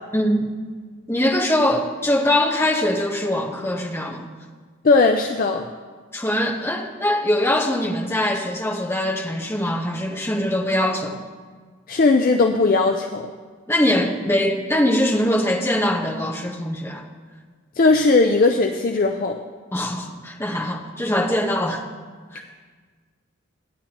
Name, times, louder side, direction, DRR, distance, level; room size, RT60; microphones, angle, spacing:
voice 1, 0.1-0.5 1.1-4.2 6.1-11.2 13.7-17.0 19.7-21.8 22.3-22.4, left 1 dB, 10° left, 0 dB, 1.0 m, -22 dB
voice 2, 4.8-5.7 11.9-13.3 17.8-19.4, left 3 dB, 45° left, 4 dB, 0.4 m, -18 dB
17.0 x 10.0 x 2.9 m, 1.5 s
head